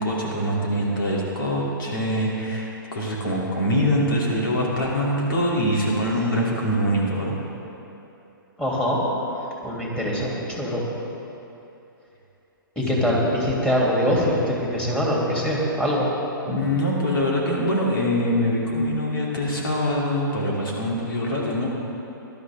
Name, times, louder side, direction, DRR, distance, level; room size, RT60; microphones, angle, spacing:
voice 1, 0.0-7.3 12.8-12.9 16.5-21.7, equal, 75° left, -3 dB, 3.1 m, -24 dB
voice 2, 8.6-9.0 9.6-10.8 12.7-16.1, equal, 5° left, -5 dB, 3.1 m, -23 dB
20.0 x 12.0 x 3.7 m, 2.9 s
hypercardioid pair, 130°, 12 cm